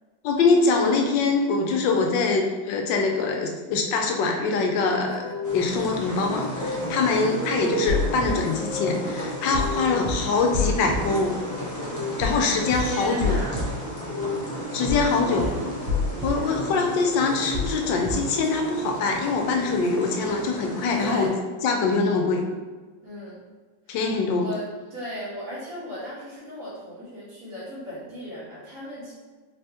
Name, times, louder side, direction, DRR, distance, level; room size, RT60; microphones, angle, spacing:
voice 1, 0.2-5.2 5.5-11.3 12.2-13.4 14.7-15.5 16.2-21.3 21.6-22.4 23.9-24.5, left 4 dB, 85° left, 3 dB, 1.3 m, -23 dB
sound 1, 5.1-17.0 18.1-20.4, left 1 dB, 55° left, 1.0 m, -36 dB
sound 2, 5.4-21.3, equal, 20° left, 0.5 m, -35 dB
sound 3, 7.9-8.3 9.5-9.7 10.0-10.1 10.5-11.0 12.2-12.4 12.7-12.8 13.2-13.6 14.9-15.1 15.4-15.5 15.9-16.3 17.5-17.7 18.0-18.1, left 4 dB, 40° right, 1.7 m, -26 dB
voice 2, 12.7-13.7 15.2-15.8 16.2-16.6 21.0-21.4 23.0-23.4 23.8-29.1, left 1 dB, 55° right, -13 dB, 1.6 m, -37 dB
3.7 x 2.8 x 3.4 m, 1.3 s
omnidirectional pair, 1.9 m